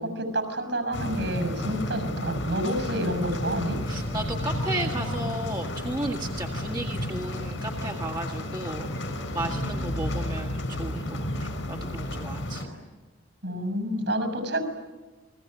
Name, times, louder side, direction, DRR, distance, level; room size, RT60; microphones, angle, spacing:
voice 1, 0.0-3.8 13.4-14.6, equal, 65° right, 10 dB, 6.5 m, -29 dB
sound 1, 0.9-12.7, left 1 dB, 80° left, 5.3 m, -32 dB
voice 2, 3.9-12.7, right 1 dB, 20° right, 1 dB, 1.8 m, -34 dB
30.0 x 22.5 x 8.9 m, 1.2 s
head